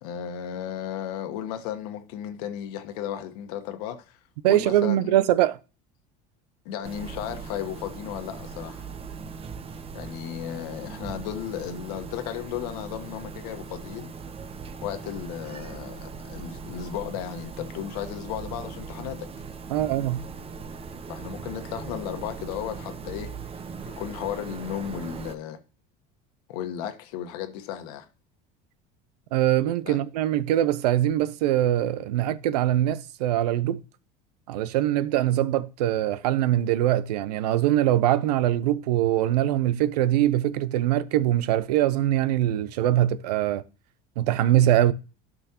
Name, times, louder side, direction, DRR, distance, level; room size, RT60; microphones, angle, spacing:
voice 1, 0.0-4.2 4.5-5.2 6.6-8.9 9.9-14.1 14.8-19.3 21.1-23.3 23.8-25.6 26.5-28.1 29.8-30.0, left 10 dB, 80° left, 1.3 m, -34 dB
voice 2, 4.4-5.6 19.7-20.2 29.3-33.8 34.5-43.6 44.2-44.9, right 13 dB, 90° right, 0.6 m, -23 dB
sound 1, 6.8-25.4, right 5 dB, 30° right, 0.9 m, -39 dB
12.0 x 6.2 x 2.9 m
supercardioid pair, 100°, 20 cm